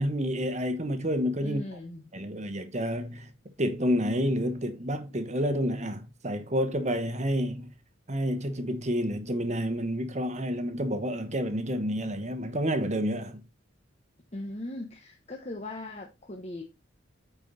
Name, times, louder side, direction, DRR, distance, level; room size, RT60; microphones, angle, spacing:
voice 1, 0.0-1.6 2.1-3.3 3.6-7.7 8.1-13.4, equal, 35° right, 1.1 m, -29 dB
voice 2, 1.4-2.0 14.3-16.6, left 1 dB, 35° left, 1.1 m, -39 dB
9.0 x 4.7 x 4.1 m
head